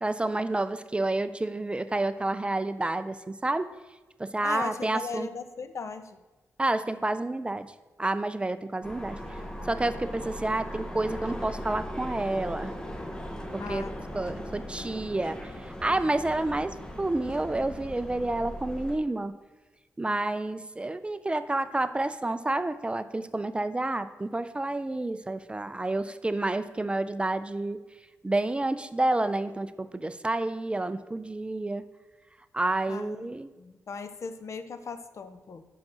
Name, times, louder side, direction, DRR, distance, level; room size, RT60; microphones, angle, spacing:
voice 1, 0.0-3.7 4.2-5.3 6.6-7.7 8.0-9.2 9.7-12.7 13.5-13.9 14.1-19.3 20.0-27.8 28.2-31.8 32.5-33.5, right 2 dB, 20° right, 12 dB, 0.4 m, -29 dB
voice 2, 4.4-6.2 13.6-14.6 32.9-33.3 33.6-35.6, left 5 dB, 60° left, 10 dB, 0.6 m, -39 dB
sound 1, 8.8-19.0, equal, 15° left, 0.9 m, -38 dB
5.7 x 5.1 x 6.2 m, 1.2 s
cardioid pair, 75°, 6 cm